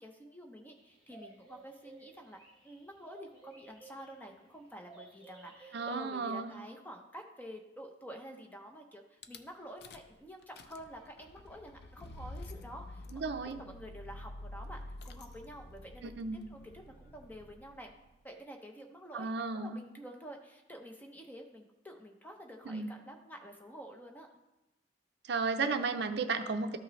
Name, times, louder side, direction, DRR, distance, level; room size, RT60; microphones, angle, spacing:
voice 1, 0.0-13.0 13.6-17.9 18.2-24.3, equal, 10° left, 3 dB, 0.8 m, -49 dB
sound 1, 0.8-4.5 4.8-6.0, right 3 dB, 25° left, 2.3 m, -55 dB
voice 2, 5.7-6.5 13.1-13.6 16.0-16.5 19.1-19.8 22.7-23.0 25.2-26.8, right 4 dB, 60° right, 8 dB, 0.5 m, -34 dB
Rattle / Car / Engine starting, 9.2-9.4 9.8-10.1 10.4-18.2, left 1 dB, 60° left, 0.5 m, -49 dB
13.0 x 5.4 x 3.1 m, 0.98 s
head